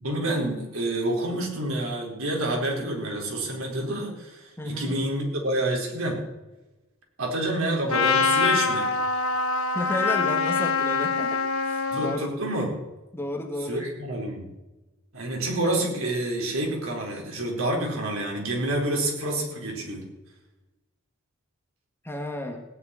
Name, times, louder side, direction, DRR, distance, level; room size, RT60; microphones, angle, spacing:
voice 1, 0.0-6.2 7.2-8.9 11.9-12.7 13.6-14.5 15.1-20.0, right 1 dB, 70° right, 0 dB, 4.5 m, -28 dB
voice 2, 4.6-5.0 9.7-12.3 13.1-13.9 22.0-22.6, left 1 dB, 10° left, 3 dB, 1.6 m, -32 dB
Trumpet, 7.9-12.2, left 4 dB, 80° left, 1.5 m, -24 dB
16.5 x 6.6 x 9.8 m, 1.1 s
head